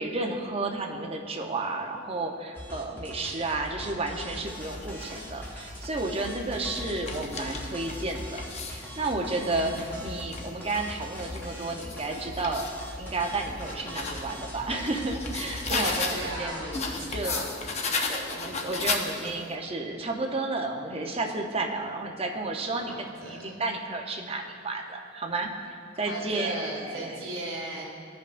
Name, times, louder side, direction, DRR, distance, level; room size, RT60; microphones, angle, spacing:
voice 1, 0.0-12.7 13.0-16.7 17.1-17.5 18.1-25.5 26.0-27.2, right 2 dB, 30° right, 2 dB, 0.6 m, -32 dB
sound 1, 2.5-17.4, equal, 10° left, 0.9 m, -41 dB
sound 2, 4.5-5.2 5.9-8.9 9.3-12.8 13.3-16.3 16.7-19.5, left 4 dB, 35° left, 0.6 m, -35 dB
voice 2, 9.4-9.8 15.7-17.9 22.8-23.5 26.0-27.8, right 1 dB, 80° right, -10 dB, 1.7 m, -37 dB
15.5 x 5.2 x 2.5 m, 2.3 s
head